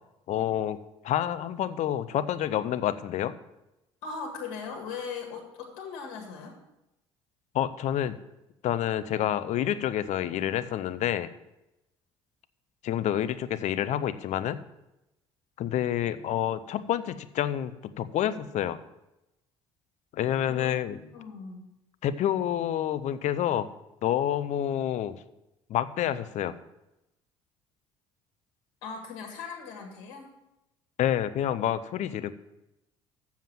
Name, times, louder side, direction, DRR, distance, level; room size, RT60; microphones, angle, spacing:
voice 1, 0.3-0.8 1.0-3.3 7.5-8.2 8.6-11.3 12.8-14.6 15.6-18.8 20.1-21.0 22.0-23.7 24.0-25.2 25.7-26.5 31.0-32.3, left 11 dB, 60° left, 13 dB, 0.7 m, -28 dB
voice 2, 4.0-6.5 20.5-21.7 28.8-30.3, left 5 dB, 75° left, 2 dB, 1.9 m, -39 dB
7.3 x 7.2 x 7.5 m, 0.92 s
hypercardioid pair, 65°, 14 cm